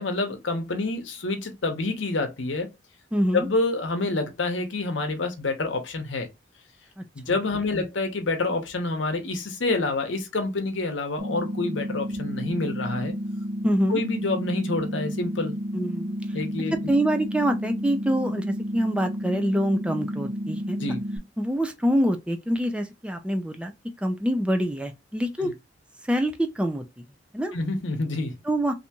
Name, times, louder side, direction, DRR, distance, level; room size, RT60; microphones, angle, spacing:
voice 1, 0.0-2.7 3.3-6.3 7.2-13.1 13.9-15.5 16.3-16.7 20.8-21.0 25.4-25.5 27.5-28.4, left 2 dB, 80° left, 0.8 m, -27 dB
voice 2, 3.1-3.5 7.0-7.4 7.7-7.9 13.6-14.0 15.7-16.4 16.9-20.8 21.4-25.5 26.1-26.8 27.3-27.6 28.4-28.7, equal, 5° right, 0.3 m, -25 dB
sound 1, 11.2-21.2, equal, 70° right, 1.0 m, -31 dB
3.4 x 2.7 x 2.8 m
head